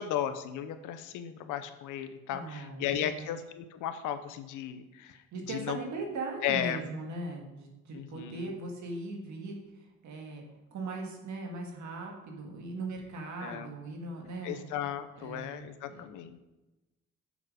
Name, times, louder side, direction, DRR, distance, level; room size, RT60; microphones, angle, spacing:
voice 1, 0.0-5.2 5.5-5.8 6.4-6.8 7.9-8.5 13.4-13.7 14.4-16.4, left 10 dB, 90° left, 10 dB, 0.7 m, -35 dB
voice 2, 2.3-3.3 5.3-9.6 10.0-10.4 10.7-14.7 15.1-16.0, right 2 dB, 70° right, 1 dB, 1.8 m, -39 dB
7.0 x 6.2 x 4.9 m, 1.0 s
cardioid pair, 90°, 30 cm